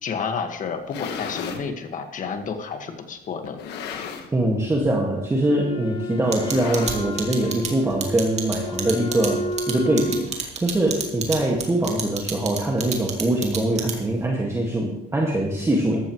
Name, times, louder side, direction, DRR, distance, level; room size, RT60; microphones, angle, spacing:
voice 1, 0.0-3.6, left 6 dB, 50° left, 6 dB, 1.8 m, -30 dB
sound 1, 0.7-1.7 2.4-2.5 3.4-4.5 4.8-5.1 5.3-5.4 6.3-7.4, left 6 dB, 85° left, 1.5 m, -35 dB
voice 2, 4.3-16.0, right 1 dB, 15° right, -1 dB, 1.9 m, -23 dB
Wind instrument woodwind instrument, 5.4-10.4, left 1 dB, 30° left, 1.3 m, -32 dB
sound 2, 6.3-14.2, right 6 dB, 40° right, 2.5 m, -29 dB
14.5 x 13.0 x 3.2 m, 0.88 s
cardioid pair, 110°, 17 cm